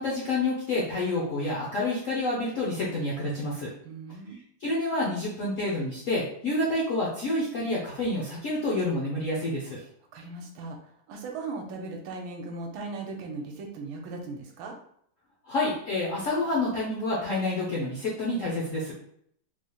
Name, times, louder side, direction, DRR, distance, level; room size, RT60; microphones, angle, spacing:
voice 1, 0.0-3.7 4.6-9.8 15.5-18.9, left 2 dB, 65° left, -5 dB, 0.8 m, -28 dB
voice 2, 3.8-4.4 10.1-14.7, right 3 dB, 75° right, 3 dB, 1.4 m, -38 dB
4.1 x 3.1 x 2.2 m, 0.68 s
omnidirectional pair, 2.3 m